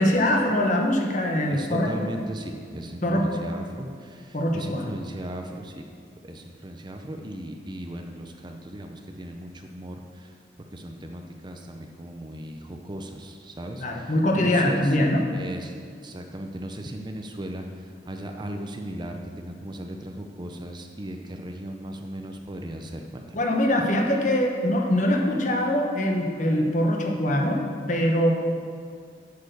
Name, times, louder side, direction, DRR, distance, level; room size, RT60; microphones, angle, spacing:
voice 1, 0.0-1.9 3.0-3.3 4.3-4.9 13.8-15.2 23.3-27.6 27.9-28.3, left 1 dB, 45° left, 1 dB, 1.1 m, -23 dB
voice 2, 1.5-5.9 6.2-15.7 16.0-23.4, right 1 dB, 25° right, 4 dB, 0.6 m, -37 dB
8.2 x 6.7 x 6.8 m, 2.1 s
head